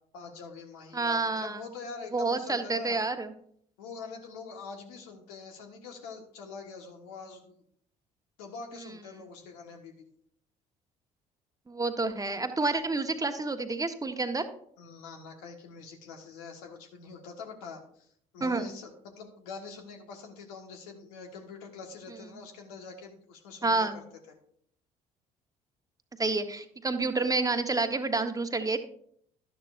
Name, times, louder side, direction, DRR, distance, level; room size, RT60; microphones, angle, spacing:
voice 1, 0.1-3.0 3.8-7.6 8.4-9.9 14.8-18.1 18.3-24.0, left 5 dB, 80° left, 3 dB, 1.5 m, -44 dB
voice 2, 0.9-1.6 2.1-3.3 11.7-14.5 18.4-18.7 23.6-24.0 26.2-28.8, right 3 dB, 20° right, 7 dB, 1.1 m, -29 dB
11.5 x 11.0 x 2.5 m, 0.65 s
hypercardioid pair, 55°, 19 cm